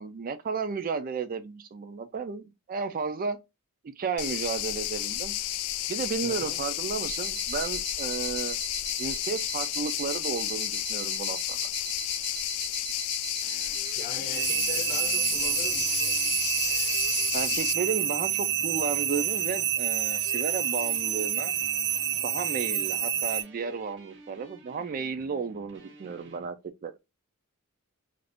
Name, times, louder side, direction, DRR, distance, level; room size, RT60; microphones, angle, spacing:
voice 1, 0.0-3.4 3.8-5.3 5.9-8.6 9.0-11.6 17.3-21.5 22.2-26.6 26.8-26.9, right 5 dB, 40° right, 0.4 m, -33 dB
sound 1, 4.2-17.7, left 14 dB, 75° left, 0.3 m, -32 dB
voice 2, 6.2-6.6 13.9-16.3, left 3 dB, 45° left, 0.8 m, -41 dB
sound 2, 7.0-23.4, right 10 dB, 85° right, 0.7 m, -29 dB
sound 3, 13.4-26.5, right 1 dB, 55° right, 0.8 m, -51 dB
2.5 x 2.4 x 3.4 m
head